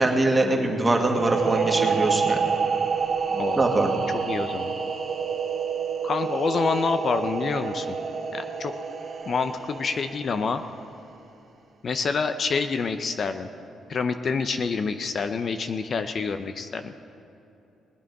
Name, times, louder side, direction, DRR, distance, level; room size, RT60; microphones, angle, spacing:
voice 1, 0.0-2.5 3.6-3.9, right 2 dB, 20° right, 1 dB, 1.8 m, -23 dB
sound 1, 1.1-10.6, right 6 dB, 50° right, 2.0 m, -28 dB
voice 2, 3.3-3.8 4.3-4.7 6.0-8.0 8.3-8.7 9.3-10.6 11.8-13.5 13.9-16.9, left 5 dB, 50° left, 8 dB, 0.6 m, -27 dB
20.0 x 8.9 x 4.7 m, 2.9 s
cardioid pair, 90°, 0 cm